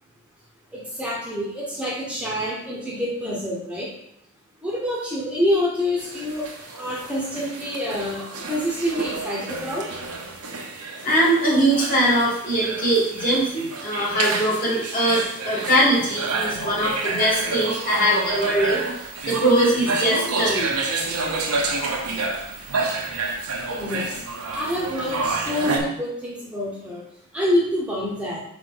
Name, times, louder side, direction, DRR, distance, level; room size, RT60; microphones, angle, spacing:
voice 1, 0.7-3.9 4.6-9.9 23.7-24.2 24.5-27.0 27.3-28.4, left 1 dB, 5° right, -5 dB, 1.0 m, -27 dB
sound 1, 6.0-25.8, right 3 dB, 80° right, 1.0 m, -29 dB
voice 2, 11.0-20.7, right 1 dB, 40° left, -5 dB, 1.8 m, -21 dB
5.0 x 4.9 x 3.9 m, 0.75 s
head